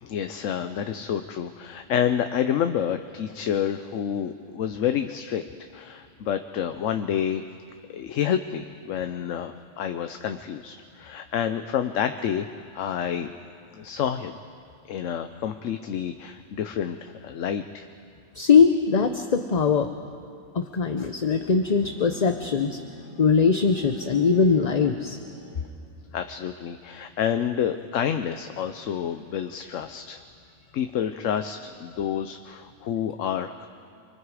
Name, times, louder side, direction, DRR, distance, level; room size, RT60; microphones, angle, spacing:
voice 1, 0.0-5.4 5.7-7.4 7.9-12.5 12.7-13.3 13.7-14.4 14.8-17.9 26.1-30.2 30.7-33.7, left 9 dB, 85° left, 8 dB, 1.1 m, -28 dB
voice 2, 18.3-19.9 20.5-22.8 23.2-25.2, left 5 dB, 40° left, 6 dB, 0.8 m, -21 dB
Bowed string instrument, 21.6-25.8, right 1 dB, 75° right, 7.5 m, -44 dB
29.5 x 23.0 x 4.9 m, 2.4 s
omnidirectional pair, 1.3 m